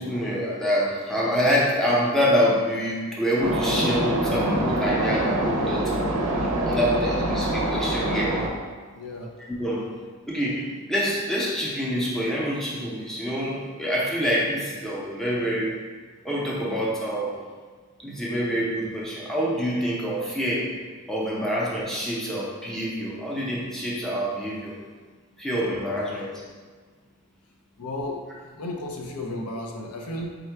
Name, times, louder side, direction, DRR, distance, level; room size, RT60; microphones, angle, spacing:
voice 1, 0.0-6.1 6.6-8.3 9.4-9.9 10.3-15.7 16.2-17.4 18.0-20.7 21.1-24.8 25.4-26.4, equal, ahead, -6 dB, 0.6 m, -26 dB
sound 1, 3.4-8.5, right 1 dB, 65° right, 0.5 m, -25 dB
voice 2, 8.9-9.3 27.8-30.4, left 1 dB, 80° left, 1 dB, 0.5 m, -34 dB
3.6 x 2.2 x 4.4 m, 1.5 s
head